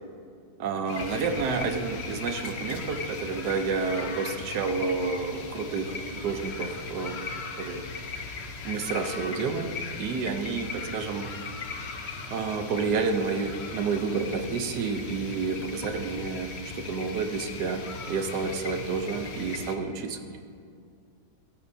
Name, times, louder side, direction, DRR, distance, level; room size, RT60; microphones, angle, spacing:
voice 1, 0.6-7.2 7.6-7.8 8.6-11.3 12.3-20.2, right 4 dB, 70° right, 6 dB, 1.3 m, -30 dB
sound 1, 0.9-19.8, left 4 dB, 50° left, 0.9 m, -38 dB
14.5 x 13.0 x 2.8 m, 2.3 s
omnidirectional pair, 1.9 m